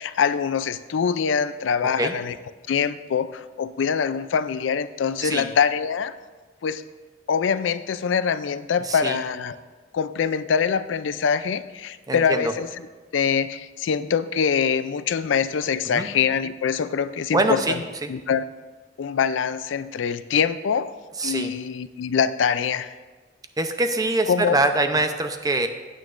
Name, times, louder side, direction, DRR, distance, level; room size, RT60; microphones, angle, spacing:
voice 1, 0.0-2.4 2.7-6.1 6.6-6.8 7.3-9.5 9.9-12.7 13.1-17.8 18.1-18.5 19.0-20.9 21.2-22.9 24.3-24.6, left 6 dB, 70° left, 13 dB, 0.4 m, -24 dB
voice 2, 1.8-2.1 5.2-5.5 8.8-9.2 12.1-12.5 15.9-16.1 17.3-18.1 21.2-21.5 23.6-25.7, right 2 dB, 20° right, 7 dB, 0.6 m, -24 dB
15.5 x 9.0 x 2.5 m, 1.3 s
head